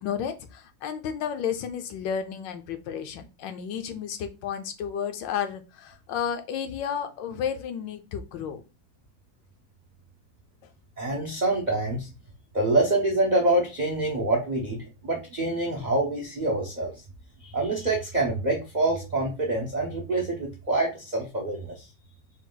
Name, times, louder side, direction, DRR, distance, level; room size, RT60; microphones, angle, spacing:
voice 1, 0.0-8.6, left 8 dB, 75° left, 8 dB, 1.2 m, -32 dB
voice 2, 11.0-12.1 12.5-17.0 17.4-21.9, right 2 dB, 85° right, -1 dB, 0.4 m, -26 dB
4.4 x 2.3 x 3.8 m, 0.29 s
omnidirectional pair, 2.2 m